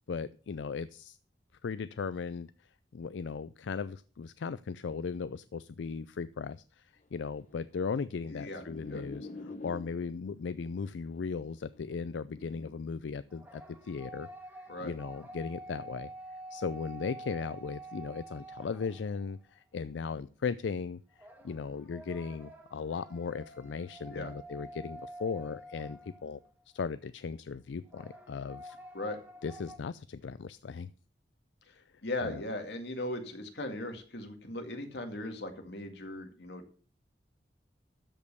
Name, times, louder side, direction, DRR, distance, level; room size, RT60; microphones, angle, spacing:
voice 1, 0.1-1.2 1.6-2.5 2.9-6.8 7.1-14.3 14.6-16.1 16.5-21.0 21.4-26.4 26.7-28.8 29.4-30.9 32.2-32.4, left 5 dB, 90° left, 15 dB, 0.4 m, -37 dB
sound 1, 7.1-10.3 11.1-12.7, left 2 dB, 45° left, 1.3 m, -47 dB
voice 2, 8.3-8.6 8.9-9.0 14.7-14.9 24.1-24.3 28.9-29.2 31.7-31.8 32.0-36.6, left 1 dB, 70° left, 5 dB, 2.1 m, -38 dB
sound 2, 13.3-19.4 21.2-26.5 27.9-29.8, right 1 dB, 10° right, 1.7 m, -48 dB
13.0 x 5.3 x 6.8 m, 0.40 s
head